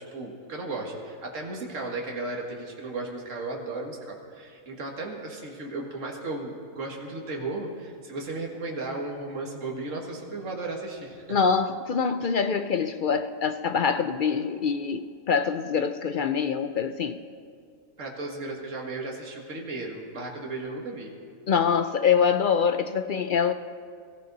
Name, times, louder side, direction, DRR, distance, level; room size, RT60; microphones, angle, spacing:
voice 1, 0.1-11.4 18.0-21.1, right 2 dB, 65° right, -1 dB, 2.1 m, -35 dB
voice 2, 11.3-17.2 21.5-23.5, left 6 dB, 60° left, 9 dB, 0.5 m, -25 dB
22.0 x 15.0 x 4.0 m, 2.2 s
omnidirectional pair, 1.4 m